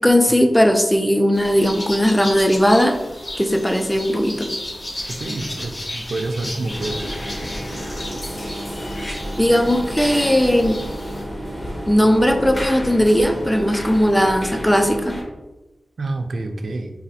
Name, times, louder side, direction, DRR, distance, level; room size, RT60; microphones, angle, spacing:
voice 1, 0.0-3.0 3.4-4.5 9.4-10.8 11.9-15.2, equal, 5° left, 6 dB, 0.3 m, -17 dB
sound 1, 1.3-11.2, left 1 dB, 75° left, 1.1 m, -34 dB
sound 2, 4.1-4.3 4.9-5.6 6.7-8.0 8.9-9.2 10.6-10.8, left 1 dB, 45° left, 1.2 m, -40 dB
voice 2, 5.2-7.0 16.0-16.9, right 2 dB, 75° right, 5 dB, 0.3 m, -27 dB
sound 3, 6.7-15.2, equal, 30° left, 0.7 m, -30 dB
4.1 x 2.3 x 2.7 m, 1.1 s
wide cardioid pair, 105°, 0 cm